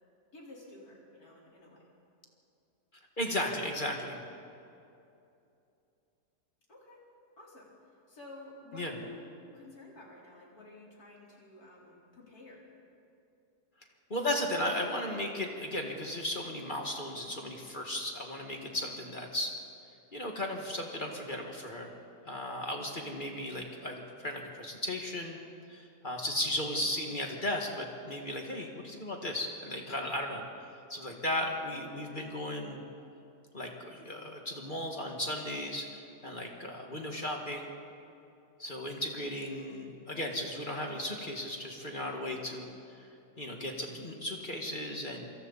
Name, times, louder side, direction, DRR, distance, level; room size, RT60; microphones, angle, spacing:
voice 1, 0.3-1.8 6.7-7.0 7.4-7.7 8.1-12.6 23.0-23.2, left 2 dB, 65° left, -4 dB, 4.7 m, -51 dB
voice 2, 3.2-4.2 8.7-9.0 14.1-19.5 20.1-21.9 22.3-25.4 25.7-30.4 30.9-32.8 33.5-37.7 38.6-43.1 43.4-45.3, left 1 dB, 30° left, 1 dB, 2.0 m, -36 dB
26.5 x 25.5 x 4.1 m, 2.7 s
omnidirectional pair, 1.7 m